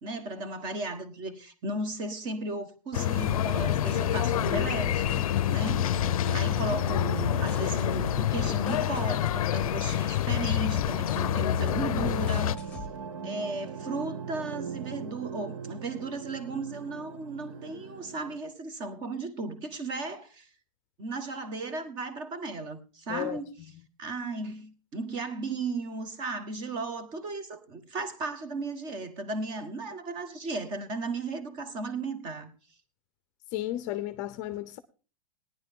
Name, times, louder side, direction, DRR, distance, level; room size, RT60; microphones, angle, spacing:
voice 1, 0.0-12.6 13.2-20.5 21.0-23.5 24.0-32.5, right 2 dB, 25° right, 1.4 m, -35 dB
sound 1, 2.9-12.6, left 12 dB, 90° left, 0.5 m, -27 dB
sound 2, 3.1-18.4, right 6 dB, 65° right, 1.2 m, -40 dB
sound 3, 3.3-12.9, left 3 dB, 5° left, 1.5 m, -42 dB
voice 2, 33.5-34.8, left 14 dB, 30° left, 0.6 m, -33 dB
18.0 x 10.5 x 3.7 m
supercardioid pair, 170°, 18 cm